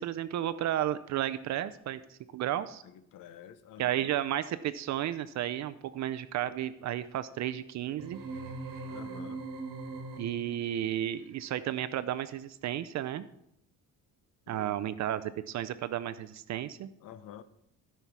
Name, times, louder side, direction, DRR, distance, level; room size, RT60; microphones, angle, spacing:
voice 1, 0.0-2.8 3.8-8.2 10.2-13.3 14.5-16.9, right 12 dB, 60° right, 13 dB, 0.5 m, -33 dB
voice 2, 2.8-4.1 8.9-9.5 14.5-14.7 17.0-17.4, left 10 dB, 75° left, 13 dB, 0.9 m, -49 dB
sound 1, 8.0-10.6, right 3 dB, 75° right, 1.7 m, -40 dB
16.5 x 5.7 x 4.7 m, 0.78 s
cardioid pair, 145°, 32 cm